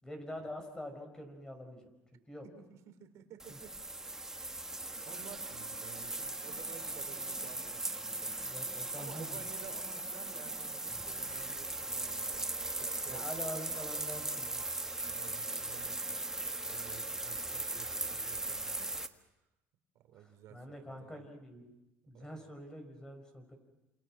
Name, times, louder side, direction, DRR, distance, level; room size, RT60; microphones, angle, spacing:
voice 1, 0.0-1.9 2.3-2.5 3.5-3.6 8.4-9.4 13.1-14.6 20.2-21.7 22.1-23.6, equal, 10° left, 5 dB, 5.4 m, -45 dB
voice 2, 2.4-3.8 4.3-8.3 9.0-13.3 13.7-13.8 15.0-16.2 16.7-18.9 19.9-21.2 22.1-22.5, right 9 dB, 65° right, 8 dB, 4.0 m, -54 dB
sound 1, 3.4-19.1, right 2 dB, 10° right, 1.5 m, -39 dB
28.5 x 28.0 x 6.2 m, 0.98 s
cardioid pair, 115°, 6 cm